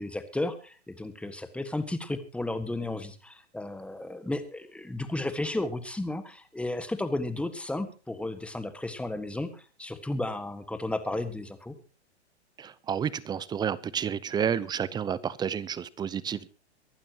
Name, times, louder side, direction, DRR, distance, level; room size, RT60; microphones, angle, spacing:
voice 1, 0.0-11.7, left 2 dB, 5° left, 1.6 m, -33 dB
voice 2, 12.6-16.5, right 8 dB, 10° right, 0.7 m, -30 dB
24.0 x 12.0 x 2.9 m
hypercardioid pair, 130°, 34 cm